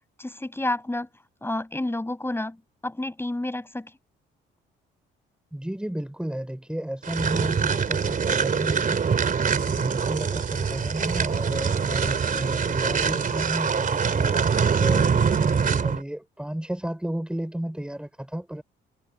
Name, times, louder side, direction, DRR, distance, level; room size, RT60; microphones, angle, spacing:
voice 1, 0.2-1.1 1.4-3.9, left 1 dB, 10° left, 7.6 m, -30 dB
voice 2, 5.5-18.6, right 1 dB, 5° right, 4.8 m, -33 dB
sound 1, 7.0-16.0, right 6 dB, 45° right, 3.2 m, -24 dB
cardioid pair, 90°, 20 cm